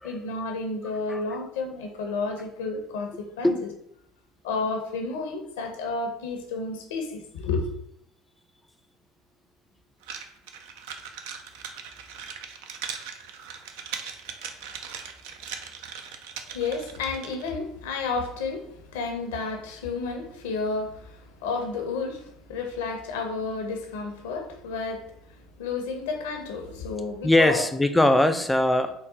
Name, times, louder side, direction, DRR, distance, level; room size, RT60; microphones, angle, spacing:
voice 1, 0.0-3.7 4.4-7.7 16.5-27.6, left 4 dB, 85° left, 4 dB, 0.6 m, -31 dB
sound 1, 10.0-17.5, right 7 dB, 75° right, 0.4 m, -39 dB
voice 2, 27.2-28.9, left 1 dB, 10° left, 9 dB, 0.4 m, -21 dB
3.9 x 2.1 x 3.9 m, 0.74 s
hypercardioid pair, 70°, 0 cm